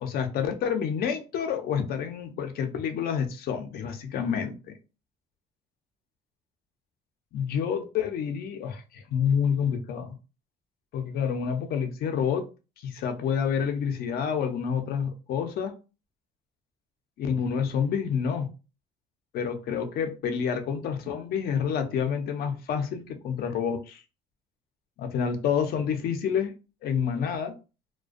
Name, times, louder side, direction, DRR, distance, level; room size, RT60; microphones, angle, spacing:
voice 1, 0.0-4.8 7.3-10.2 10.9-12.5 12.8-15.7 17.2-18.5 19.3-24.0 25.0-26.5 26.8-27.6, left 7 dB, 65° left, 0.5 m, -28 dB
2.4 x 2.2 x 2.4 m
cardioid pair, 110°, 17 cm